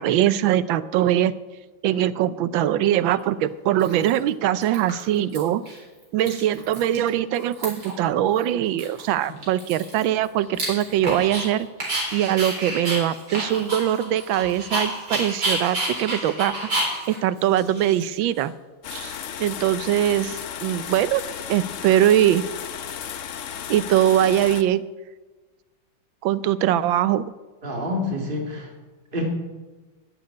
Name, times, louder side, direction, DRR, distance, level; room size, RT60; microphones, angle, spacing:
voice 1, 0.0-1.3 1.8-5.6 6.1-18.5 18.9-21.2 21.5-22.4 23.7-24.8 26.2-27.3, right 11 dB, 90° right, 15 dB, 1.4 m, -22 dB
Dog, 3.1-3.2 3.8-4.3 4.6-5.4 5.7-5.8 6.0-7.1 7.3-8.0 8.4-8.5 8.8-11.5 11.8-18.4, right 1 dB, 60° right, 4.9 m, -30 dB
sound 1, 18.8-24.6, left 8 dB, 60° left, 0.8 m, -34 dB
voice 2, 27.6-28.7 29.1-29.3, left 1 dB, 25° right, 0 dB, 2.3 m, -27 dB
10.5 x 8.9 x 9.6 m, 1.3 s
omnidirectional pair, 2.1 m